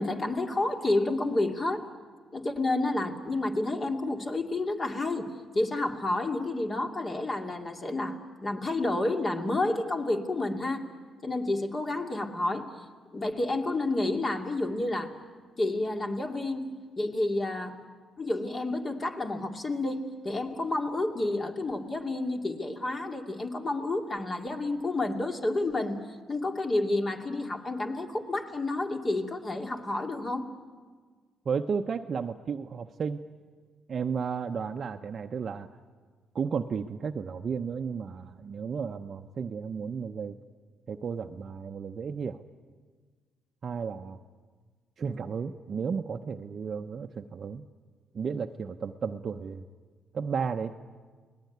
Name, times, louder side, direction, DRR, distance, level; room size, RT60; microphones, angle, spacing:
voice 1, 0.0-1.8 2.3-5.3 5.5-10.8 11.2-12.7 13.1-15.1 15.6-16.7 17.0-17.8 18.2-26.0 26.3-30.5, left 2 dB, 30° left, 3 dB, 2.6 m, -30 dB
voice 2, 31.4-33.2 33.9-35.7 36.3-40.4 40.9-42.4 43.6-44.2 45.0-47.6 48.1-49.7 50.1-50.7, right 6 dB, 50° right, 4 dB, 0.8 m, -33 dB
29.5 x 19.5 x 9.4 m, 1.5 s
cardioid pair, 90°, 0 cm